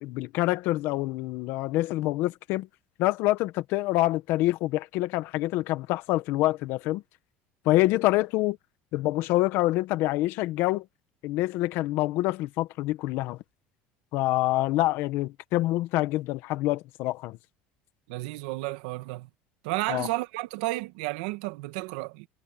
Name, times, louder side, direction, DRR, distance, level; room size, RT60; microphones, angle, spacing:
voice 1, 0.0-2.7 3.0-7.0 7.6-8.6 8.9-10.8 11.2-13.4 14.1-17.4 19.9-20.1, left 17 dB, 65° left, 1.5 m, -26 dB
voice 2, 18.1-19.3 19.6-22.3, right 20 dB, 85° right, 1.7 m, -32 dB
cardioid pair, 140°, 4 cm